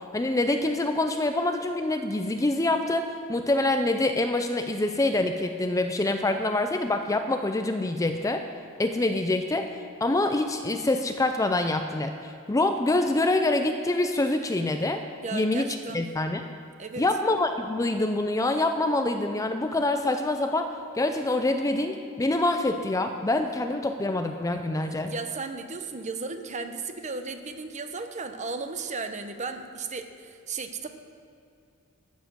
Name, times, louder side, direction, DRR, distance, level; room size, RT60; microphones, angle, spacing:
voice 1, 0.1-8.4 8.8-9.7 10.0-15.0 15.3-15.7 15.9-16.4 17.0-20.7 20.9-25.1, left 2 dB, 15° left, 6 dB, 0.4 m, -25 dB
voice 2, 15.2-16.1 16.8-17.0 24.8-30.9, right 4 dB, 30° right, 7 dB, 0.8 m, -35 dB
14.0 x 7.4 x 6.2 m, 2.5 s
head